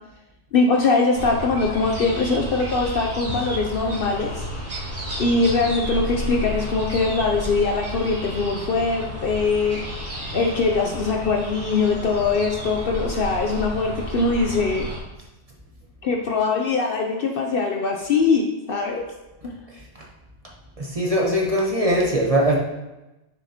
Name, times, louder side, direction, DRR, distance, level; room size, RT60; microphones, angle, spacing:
voice 1, 0.5-4.5 5.2-9.8 10.3-14.9 16.0-19.1 19.4-19.5, left 4 dB, 60° left, 1 dB, 0.7 m, -22 dB
sound 1, 1.1-15.0, equal, 55° right, 2.2 m, -32 dB
voice 2, 20.8-22.6, equal, 30° right, -3 dB, 0.9 m, -21 dB
6.4 x 6.2 x 2.8 m, 1.0 s
omnidirectional pair, 1.3 m